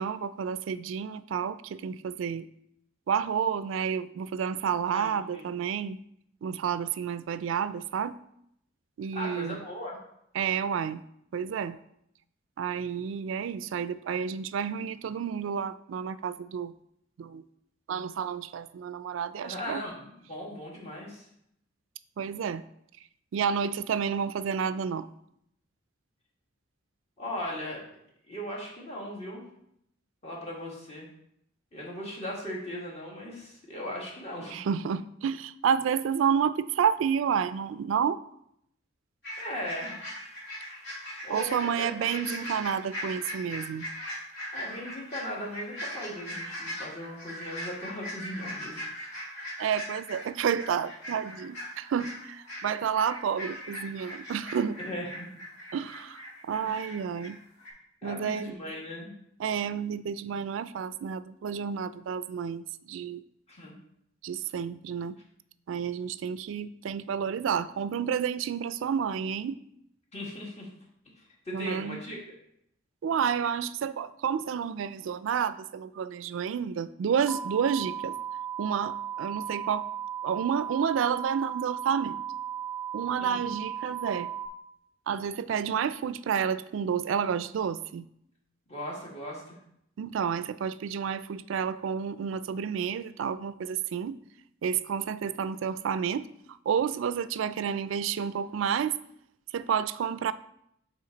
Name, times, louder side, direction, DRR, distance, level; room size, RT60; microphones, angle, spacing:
voice 1, 0.0-2.5 3.1-6.0 6.4-8.2 9.0-9.6 10.3-11.0 11.3-11.8 12.6-16.7 17.2-17.4 17.9-19.8 22.2-22.6 23.3-25.1 34.5-38.2 41.3-43.9 49.6-54.8 55.7-56.2 56.4-57.4 58.0-58.5 59.4-63.2 64.2-65.2 65.7-69.6 71.5-72.0 73.0-78.2 78.6-79.9 80.2-82.2 82.9-84.3 85.1-88.1 90.0-94.2 94.6-96.3 96.7-99.0 99.5-100.3, right 7 dB, 75° right, 15 dB, 0.3 m, -30 dB
voice 2, 4.9-5.5 9.1-10.0 19.4-21.3 27.2-27.8 28.3-29.4 30.2-31.1 31.7-34.6 39.4-40.1 41.2-42.4 44.5-48.9 54.8-55.4 56.6-57.0 58.0-59.1 63.5-63.7 70.1-70.7 71.4-72.2 83.2-83.5 88.7-89.6, equal, 35° left, -3 dB, 1.7 m, -38 dB
sound 1, 39.2-57.3 57.6-57.7, equal, 60° left, 2.5 m, -40 dB
sound 2, 77.3-84.5, right 9 dB, ahead, 0.5 m, -36 dB
8.3 x 3.5 x 3.9 m, 0.74 s
head